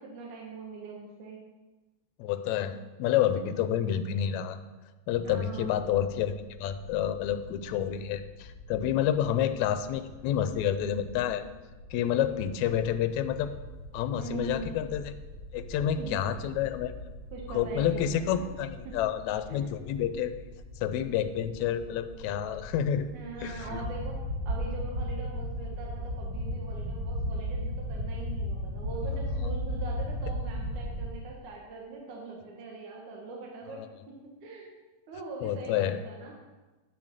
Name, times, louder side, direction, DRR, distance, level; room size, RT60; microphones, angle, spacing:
voice 1, 0.0-1.4 5.2-5.8 14.2-14.7 16.0-16.2 17.3-18.1 18.9-19.0 19.5-19.6 23.1-24.2 24.5-34.7 35.1-36.3, right 4 dB, 75° right, -1 dB, 2.8 m, -42 dB
voice 2, 2.2-4.6 5.1-6.3 6.6-11.4 11.9-13.5 13.9-15.1 15.5-16.9 17.5-20.3 20.8-23.1 23.4-23.9 33.7-33.9 35.4-36.0, left 10 dB, 75° left, 10 dB, 1.8 m, -29 dB
sound 1, 5.1-23.1, left 2 dB, 40° left, 2.3 m, -48 dB
sound 2, 13.2-31.1, equal, 40° right, 1.5 m, -36 dB
10.0 x 7.1 x 6.6 m, 1.2 s
omnidirectional pair, 3.6 m